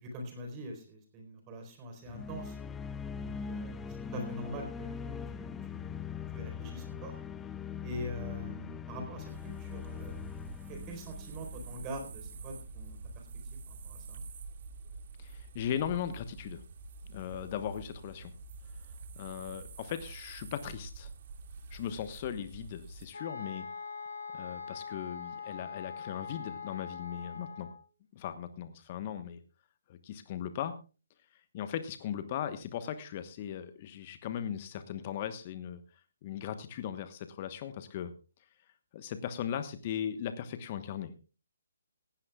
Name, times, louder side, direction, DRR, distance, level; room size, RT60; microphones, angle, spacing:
voice 1, 0.0-2.6 3.2-6.0 6.3-7.2 7.8-10.2 10.7-13.0 13.7-14.2, equal, 20° right, 4 dB, 4.2 m, -43 dB
sound 1, 2.1-12.1, left 6 dB, 10° left, 0.6 m, -41 dB
sound 2, 9.3-23.1, right 4 dB, 45° right, 2.1 m, -47 dB
voice 2, 15.2-16.6 17.1-18.3 19.2-21.1 21.7-23.7 24.3-27.7 28.1-29.4 29.9-30.7 31.5-35.8 36.2-38.1 38.9-41.2, left 9 dB, 35° left, 10 dB, 1.1 m, -38 dB
sound 3, 23.1-27.8, left 6 dB, 70° left, 4.8 m, -42 dB
19.0 x 16.0 x 2.3 m, 0.33 s
figure-of-eight pair, 140°, 0 cm